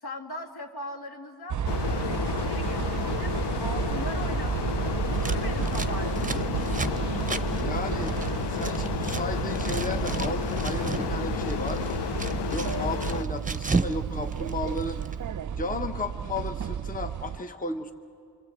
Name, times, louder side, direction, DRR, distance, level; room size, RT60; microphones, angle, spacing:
voice 1, 0.0-1.6 1.9-6.3, left 1 dB, 70° left, 3 dB, 2.4 m, -40 dB
sound 1, 1.5-17.4, right 8 dB, 50° right, 0.5 m, -32 dB
sound 2, 1.7-13.2, left 10 dB, 90° left, 0.6 m, -32 dB
Scissors, 5.1-9.2 9.5-11.1 11.4-14.0 14.2-15.1, right 4 dB, 20° right, 0.8 m, -33 dB
voice 2, 7.6-8.2 8.5-12.0 12.5-15.0 15.6-17.9, left 2 dB, 20° left, 7 dB, 1.0 m, -34 dB
27.0 x 26.0 x 8.0 m, 2.4 s
wide cardioid pair, 85°, 40 cm